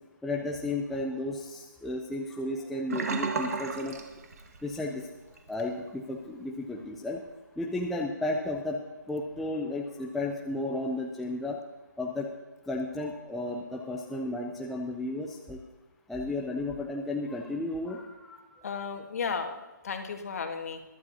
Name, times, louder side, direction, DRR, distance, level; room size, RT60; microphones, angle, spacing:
voice 1, 0.2-4.0 4.6-5.1 5.5-7.2 7.6-8.8 9.1-11.6 12.0-12.3 12.7-15.6 16.1-18.4, left 2 dB, ahead, -2 dB, 0.3 m, -33 dB
Sink (filling or washing), 2.9-4.9 5.2-5.5 5.9-6.0, right 4 dB, 45° right, 1.7 m, -33 dB
voice 2, 18.6-20.8, left 5 dB, 45° left, 5 dB, 1.7 m, -34 dB
22.5 x 12.0 x 2.8 m, 1.2 s
hypercardioid pair, 165°, 11 cm